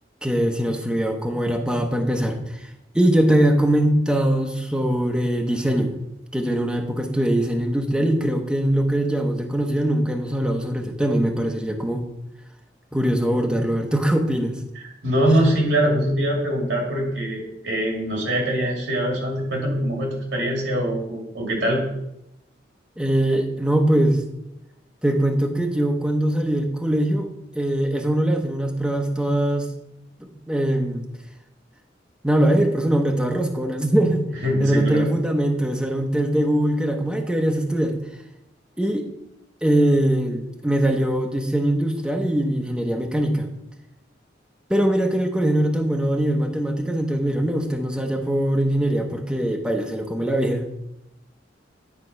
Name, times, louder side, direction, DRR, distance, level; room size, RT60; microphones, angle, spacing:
voice 1, 0.2-2.7 2.9-5.9 6.3-12.1 12.9-14.6 23.0-24.2 25.0-27.3 27.5-29.7 30.2-31.1 32.2-34.3 34.6-38.0 38.8-39.1 39.6-43.5 44.7-50.7, right 1 dB, 5° right, 3 dB, 0.8 m, -22 dB
voice 2, 15.0-21.8 34.4-35.1, right 1 dB, 80° right, 0 dB, 2.3 m, -23 dB
9.6 x 3.7 x 5.3 m, 0.85 s
head